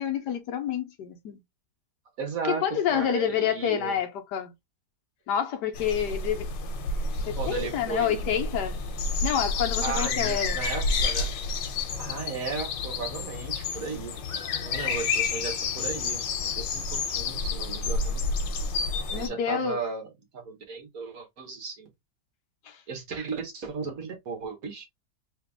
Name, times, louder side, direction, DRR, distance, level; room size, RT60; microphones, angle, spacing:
voice 1, 0.0-1.4 2.5-4.5 5.3-6.5 7.0-8.8 9.2-10.6 19.1-19.8 22.6-22.8, left 9 dB, 70° left, 1.3 m, -28 dB
voice 2, 2.2-2.6 2.9-3.9 7.4-8.3 9.8-11.3 12.0-14.2 14.6-18.2 19.1-20.1 20.3-21.9 22.9-24.8, right 4 dB, 55° right, 1.4 m, -35 dB
sound 1, 5.7-19.3, left 4 dB, 90° left, 1.5 m, -30 dB
3.5 x 2.9 x 3.4 m
omnidirectional pair, 1.9 m